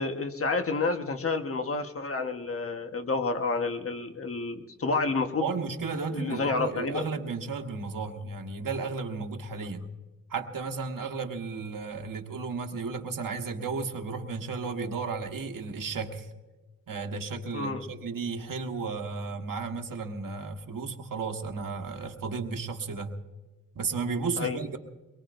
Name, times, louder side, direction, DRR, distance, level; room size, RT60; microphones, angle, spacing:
voice 1, 0.0-5.5 6.1-7.0 17.5-17.8 24.4-24.6, left 3 dB, 45° left, 6 dB, 1.3 m, -29 dB
voice 2, 5.4-9.8 10.3-16.3 16.9-23.1 23.7-24.8, right 4 dB, 85° right, 5 dB, 1.4 m, -34 dB
24.0 x 22.5 x 2.6 m, 1.2 s
wide cardioid pair, 145°, 33 cm